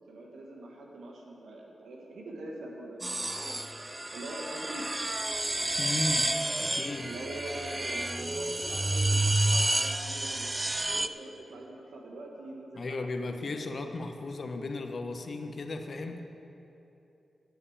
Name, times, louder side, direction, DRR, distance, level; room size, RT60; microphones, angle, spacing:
voice 1, 0.1-3.6 4.1-4.9 7.0-13.9, right 1 dB, 85° right, 0 dB, 1.7 m, -43 dB
sound 1, 3.0-11.1, right 2 dB, 25° right, 0.5 m, -30 dB
voice 2, 5.8-6.3 6.6-7.1 12.7-16.2, left 2 dB, 60° left, 5 dB, 1.0 m, -35 dB
11.5 x 8.1 x 7.2 m, 2.9 s
cardioid pair, 45°, 0 cm